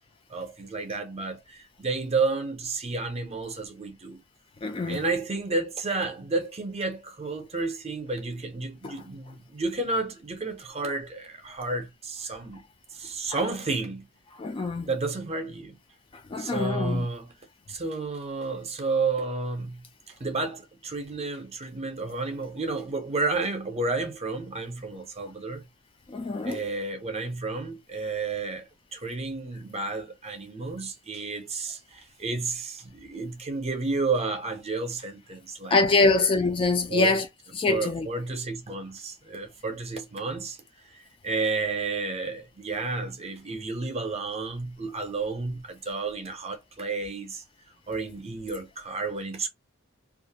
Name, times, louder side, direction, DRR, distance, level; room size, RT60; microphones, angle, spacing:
voice 1, 0.3-4.2 4.9-12.6 12.9-14.1 14.8-15.8 16.4-17.3 17.7-25.6 26.4-36.2 36.9-37.2 37.7-40.6 40.9-47.4 47.9-49.5, right 3 dB, 30° right, 0.6 m, -31 dB
voice 2, 4.6-5.0 8.8-8.9 14.4-14.9 16.3-17.1 26.1-26.6 35.7-37.3 37.5-38.1, left 3 dB, 25° left, 0.3 m, -24 dB
2.4 x 2.1 x 2.7 m
head